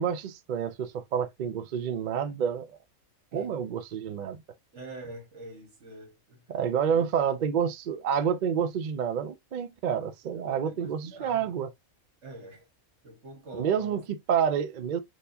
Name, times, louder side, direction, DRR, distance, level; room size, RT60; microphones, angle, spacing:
voice 1, 0.0-2.7 3.3-4.4 6.5-11.7 13.5-15.0, right 7 dB, 70° right, 0.4 m, -28 dB
voice 2, 4.7-6.5 6.9-7.3 10.3-11.5 12.2-12.7 13.0-14.0, right 2 dB, 55° right, 1.8 m, -45 dB
4.5 x 3.1 x 2.6 m
omnidirectional pair, 1.5 m